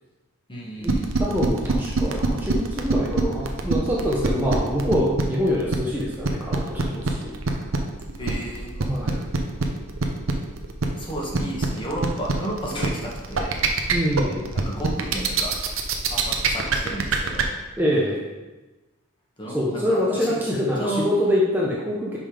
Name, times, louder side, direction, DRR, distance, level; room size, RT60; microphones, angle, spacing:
voice 1, 0.5-1.1 8.2-8.7 9.3-9.5 11.0-13.7 14.5-15.5 16.1-17.5 19.4-20.4 20.8-21.1, right 1 dB, 25° left, -3 dB, 1.3 m, -32 dB
sound 1, 0.8-17.4, right 4 dB, 65° right, 0.7 m, -24 dB
voice 2, 1.2-7.3 8.8-9.3 13.9-14.5 17.8-18.2 19.5-22.2, equal, 10° right, -5 dB, 0.8 m, -25 dB
5.5 x 5.3 x 5.0 m, 1.2 s
head